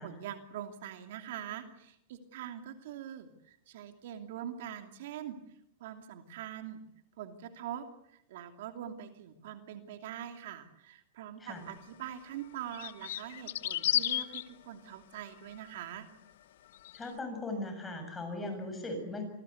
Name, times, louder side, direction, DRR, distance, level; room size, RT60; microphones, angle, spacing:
voice 1, 0.0-5.4 5.8-6.8 7.2-16.1, right 10 dB, 65° right, 6 dB, 2.8 m, -43 dB
sound 1, 11.7-11.8 12.7-14.4 16.7-17.1, left 13 dB, 75° left, 1.2 m, -32 dB
voice 2, 16.9-19.2, left 2 dB, 10° left, 5 dB, 7.4 m, -38 dB
27.0 x 20.5 x 8.2 m, 0.74 s
supercardioid pair, 150°, 0 cm